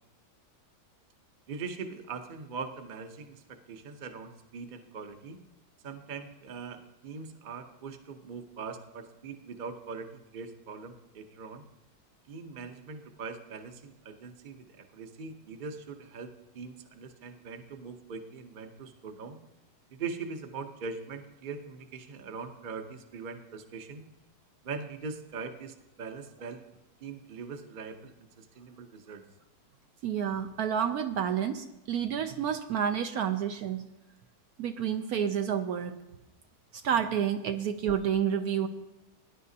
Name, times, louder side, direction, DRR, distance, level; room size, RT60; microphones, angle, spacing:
voice 1, 1.5-5.4 5.8-11.7 12.3-19.4 19.9-24.0 24.6-26.6 27.0-29.2, right 5 dB, 40° right, 6 dB, 0.8 m, -41 dB
voice 2, 30.0-33.9 34.6-36.0 36.8-38.7, right 8 dB, 70° right, 7 dB, 1.0 m, -29 dB
18.5 x 10.5 x 2.8 m, 0.97 s
omnidirectional pair, 1.8 m